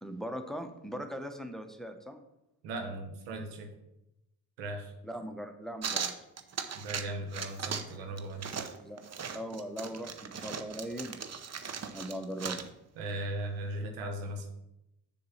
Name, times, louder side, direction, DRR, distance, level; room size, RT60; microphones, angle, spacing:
voice 1, 0.0-2.2 5.0-6.1 8.8-9.0 9.3-11.2 11.9-12.6, equal, ahead, 6 dB, 0.9 m, -39 dB
voice 2, 2.6-3.7 4.6-4.9 6.7-8.6 13.0-14.5, right 1 dB, 90° right, 4 dB, 1.0 m, -38 dB
sound 1, 5.8-7.1 7.3-7.9 8.2-12.7, right 6 dB, 35° right, 0.7 m, -38 dB
6.6 x 4.2 x 5.6 m, 0.88 s
hypercardioid pair, 50°, 44 cm